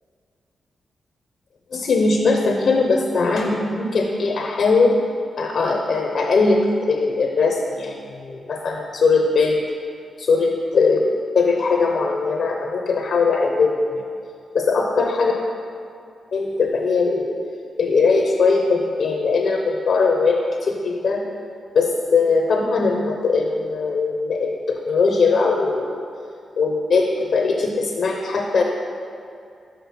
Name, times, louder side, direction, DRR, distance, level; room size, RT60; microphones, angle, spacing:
voice 1, 1.7-4.9 5.4-9.6 10.2-11.0 11.3-13.9 14.5-15.3 16.3-17.4 17.8-21.2 21.7-26.0 26.6-27.1 27.3-28.6, left 4 dB, 70° left, 2 dB, 0.7 m, -20 dB
5.9 x 5.3 x 5.7 m, 2.4 s
cardioid pair, 65°, 0 cm